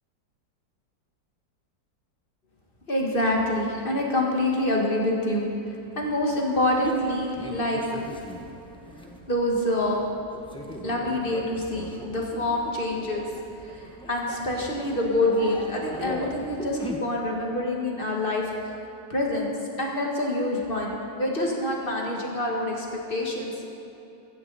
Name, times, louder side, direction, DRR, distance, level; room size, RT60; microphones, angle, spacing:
voice 1, 2.9-7.8 9.3-10.1 10.8-13.3 13.6-18.8 19.1-19.5 19.8-23.7, left 1 dB, 30° left, -1 dB, 1.9 m, -26 dB
sound 1, 6.8-17.0, equal, 5° left, 0.7 m, -39 dB
15.0 x 14.5 x 4.2 m, 2.8 s
omnidirectional pair, 2.0 m